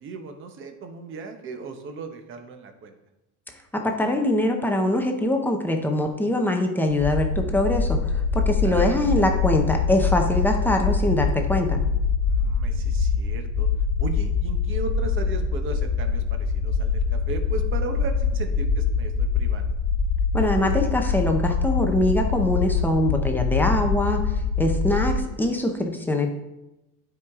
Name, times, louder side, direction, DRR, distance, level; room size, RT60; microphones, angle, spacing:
voice 1, 0.0-3.0 8.6-8.9 12.2-13.7 14.0-19.7, right 4 dB, 30° right, 6 dB, 0.9 m, -36 dB
voice 2, 3.7-11.8 20.3-26.3, left 1 dB, 5° left, 3 dB, 0.5 m, -23 dB
sound 1, 7.0-25.2, left 5 dB, 60° left, 1.1 m, -24 dB
11.5 x 4.9 x 3.6 m, 0.94 s
cardioid pair, 155°, 42 cm